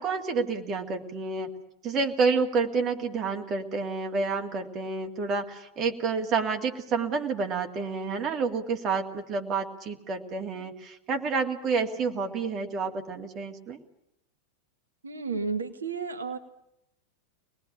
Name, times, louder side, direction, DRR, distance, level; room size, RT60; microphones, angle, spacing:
voice 1, 0.0-1.5 1.8-13.8, right 4 dB, 30° right, 4 dB, 2.3 m, -29 dB
voice 2, 15.0-16.4, right 4 dB, 70° right, 7 dB, 1.4 m, -32 dB
24.5 x 19.5 x 10.0 m, 0.82 s
figure-of-eight pair, 90°, 0 cm